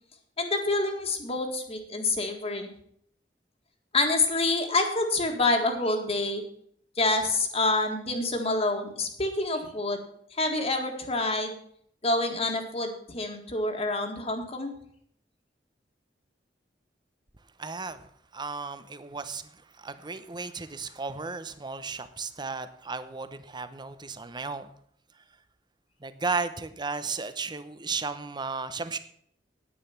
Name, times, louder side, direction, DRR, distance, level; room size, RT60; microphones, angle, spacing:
voice 1, 0.4-2.7 3.9-6.4 7.0-10.0 10.3-11.6 12.0-14.7, left 2 dB, 35° left, 3 dB, 1.8 m, -27 dB
voice 2, 17.6-18.0 18.3-19.4 19.8-24.7 26.0-29.0, right 4 dB, 25° right, 12 dB, 0.8 m, -34 dB
9.9 x 9.5 x 5.8 m, 0.65 s
head